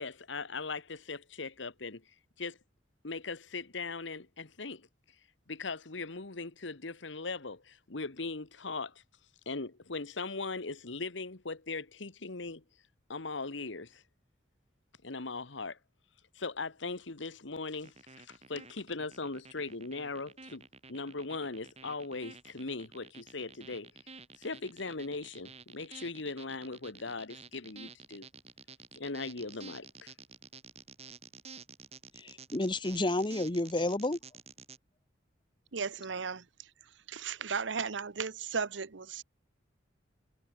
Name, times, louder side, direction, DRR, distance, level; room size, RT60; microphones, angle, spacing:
voice 1, 0.0-2.0 2.4-2.6 3.0-4.9 5.5-9.0 9.4-12.6 13.1-14.0 15.0-15.8 16.3-20.6 20.9-23.9 24.4-28.3 28.9-30.1, left 3 dB, 75° left, 1.5 m, -39 dB
sound 1, 17.8-34.8, right 5 dB, 35° right, 7.2 m, -51 dB
voice 2, 32.2-34.2, left 2 dB, 25° left, 1.2 m, -31 dB
voice 3, 35.7-36.4 37.1-39.2, right 5 dB, 70° right, 0.9 m, -35 dB
head